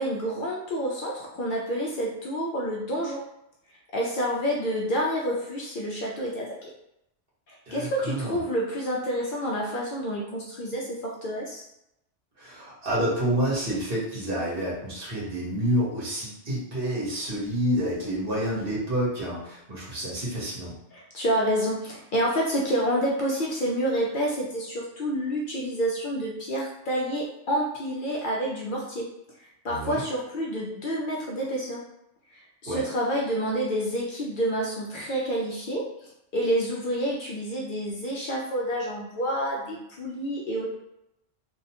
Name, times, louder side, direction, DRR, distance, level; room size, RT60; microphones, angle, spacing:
voice 1, 0.0-3.2 3.9-6.7 7.7-11.6 20.9-29.1 29.6-31.8 32.3-35.9 36.3-40.7, equal, 60° left, -3 dB, 0.6 m, -28 dB
voice 2, 7.7-8.4 12.4-20.8 29.7-30.0 32.6-32.8, right 1 dB, 50° right, -6 dB, 1.2 m, -28 dB
2.6 x 2.1 x 2.8 m, 0.82 s
omnidirectional pair, 1.2 m